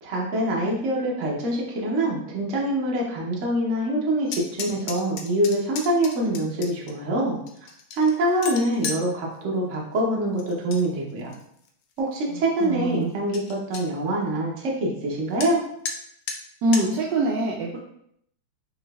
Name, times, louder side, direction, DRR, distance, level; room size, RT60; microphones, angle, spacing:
voice 1, 0.0-7.4 7.9-11.3 12.0-15.6, right 1 dB, 60° right, -2 dB, 0.8 m, -25 dB
sound 1, 4.3-6.9 7.5-9.0 10.4-10.8 11.2-11.7 12.2-12.3 12.6-12.7 13.0-13.1 13.3-13.8 15.4-15.5 15.8-16.0 16.3-16.4 16.7-16.9, left 5 dB, 80° left, 1.0 m, -34 dB
voice 2, 12.6-13.1 16.6-17.8, right 2 dB, 85° right, -2 dB, 0.9 m, -24 dB
5.8 x 2.5 x 2.3 m, 0.71 s
omnidirectional pair, 2.4 m